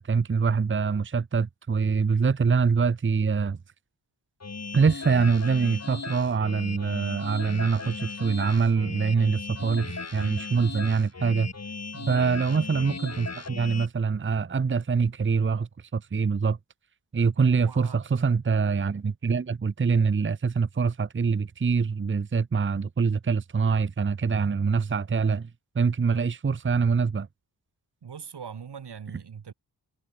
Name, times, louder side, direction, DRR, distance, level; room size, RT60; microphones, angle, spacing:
voice 1, 0.0-3.6 4.7-11.5 12.1-16.6 17.1-25.5 25.7-27.3, right 5 dB, 30° right, 0.8 m, -24 dB
sound 1, 4.4-13.9, left 4 dB, 40° left, 4.4 m, -37 dB
voice 2, 17.4-18.0 28.0-29.5, right 7 dB, 90° right, 5.7 m, -41 dB
wide cardioid pair, 130°, 39 cm